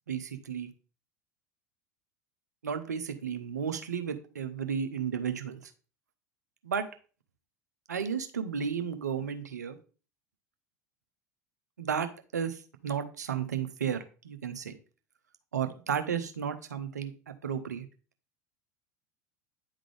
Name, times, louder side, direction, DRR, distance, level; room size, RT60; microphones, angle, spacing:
voice 1, 0.1-0.7 2.6-5.7 6.6-6.9 7.9-9.8 11.8-14.8 15.5-17.9, right 7 dB, 85° right, 8 dB, 0.8 m, -33 dB
9.7 x 3.7 x 3.3 m, 0.37 s
figure-of-eight pair, 75°, 9 cm